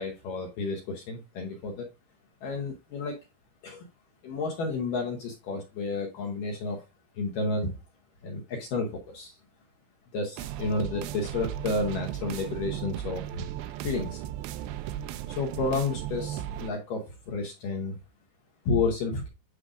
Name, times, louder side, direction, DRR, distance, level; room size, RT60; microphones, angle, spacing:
voice 1, 0.0-1.9 2.4-3.2 3.6-3.9 4.2-6.8 7.2-7.7 8.2-9.4 10.1-13.5 13.8-14.2 15.3-18.0 18.7-19.3, left 3 dB, 80° left, 0 dB, 1.9 m, -31 dB
sound 1, 10.4-16.7, right 12 dB, 80° right, 2.5 m, -36 dB
9.7 x 5.0 x 2.5 m, 0.27 s
omnidirectional pair, 5.4 m